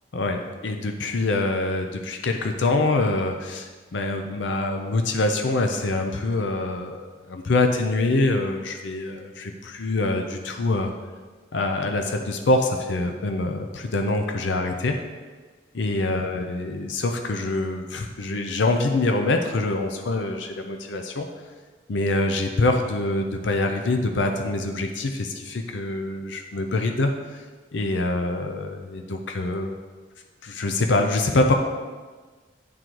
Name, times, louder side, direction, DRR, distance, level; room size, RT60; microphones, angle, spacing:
voice 1, 0.1-10.9 11.5-15.0 15.7-21.3 21.9-27.4 27.7-29.8 30.4-31.5, left 2 dB, 75° left, 4 dB, 0.6 m, -25 dB
9.4 x 3.8 x 4.6 m, 1.4 s
head